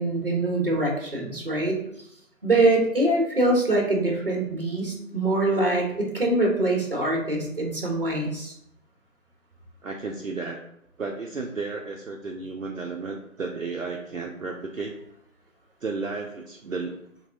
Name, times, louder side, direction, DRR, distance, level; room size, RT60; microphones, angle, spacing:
voice 1, 0.0-1.8 2.4-8.5, right 2 dB, 40° right, 0 dB, 1.0 m, -24 dB
voice 2, 9.8-10.6 11.0-14.9 15.8-16.9, right 4 dB, 65° right, 0 dB, 0.5 m, -33 dB
3.9 x 3.5 x 2.6 m, 0.74 s
figure-of-eight pair, 165°, 43 cm